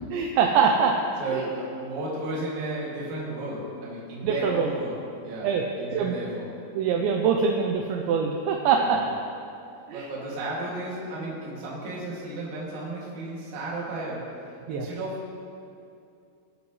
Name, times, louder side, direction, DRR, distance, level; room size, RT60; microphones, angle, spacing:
voice 1, 0.1-1.0 1.3-1.4 4.2-4.7 5.4-5.6 5.9-6.1 6.8-9.0 9.9-10.0 14.7-14.9, right 6 dB, 80° right, 1 dB, 2.7 m, -23 dB
voice 2, 1.2-5.0 5.2-5.5 5.8-6.5 8.8-9.0 9.9-14.3 14.7-15.3, right 2 dB, 45° right, -6 dB, 3.2 m, -33 dB
23.5 x 8.0 x 3.2 m, 2.6 s
omnidirectional pair, 5.6 m